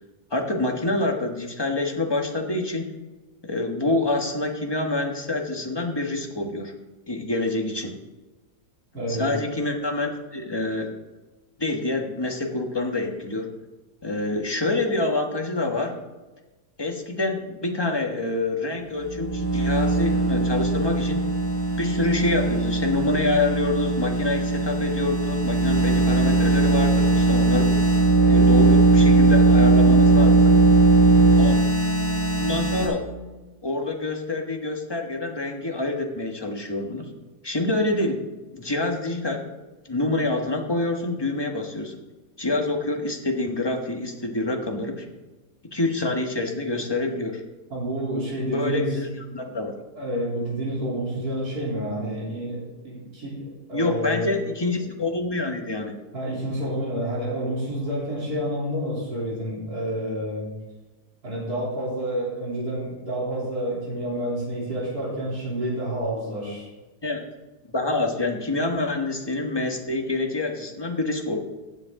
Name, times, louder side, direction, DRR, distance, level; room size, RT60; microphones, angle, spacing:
voice 1, 0.3-2.9 3.4-6.7 7.1-8.0 9.1-10.9 11.6-13.5 14.0-16.0 16.8-21.3 21.8-27.7 28.2-30.6 31.4-31.6 32.4-33.0 33.6-37.1 37.4-38.2 38.5-39.5 39.8-42.0 42.4-45.1 45.7-47.4 48.5-49.8 53.7-56.0 67.0-67.2 67.7-71.4, left 2 dB, 15° left, 3 dB, 1.2 m, -26 dB
voice 2, 8.9-9.3 47.7-49.0 50.0-54.4 56.1-60.5 61.2-66.7, right 1 dB, 65° right, -5 dB, 3.8 m, -29 dB
sound 1, 19.0-32.9, right 2 dB, 80° right, 5.1 m, -19 dB
15.0 x 8.2 x 3.7 m, 1.2 s
omnidirectional pair, 1.7 m